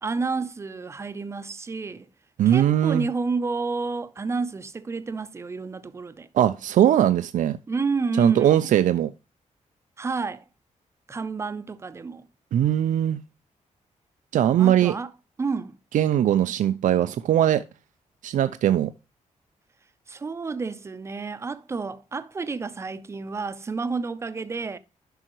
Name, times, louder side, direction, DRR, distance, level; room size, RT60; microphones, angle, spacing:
voice 1, 0.0-2.1 2.5-6.3 7.7-8.6 10.0-10.4 11.1-12.3 14.6-15.1 15.4-15.8 20.1-24.8, right 4 dB, 20° right, 0.6 m, -30 dB
voice 2, 2.4-3.1 6.3-7.6 8.2-9.1 12.5-13.2 14.3-14.9 15.9-17.6 18.2-18.9, right 11 dB, 90° right, 0.5 m, -20 dB
11.5 x 5.5 x 3.0 m
wide cardioid pair, 175°, 13 cm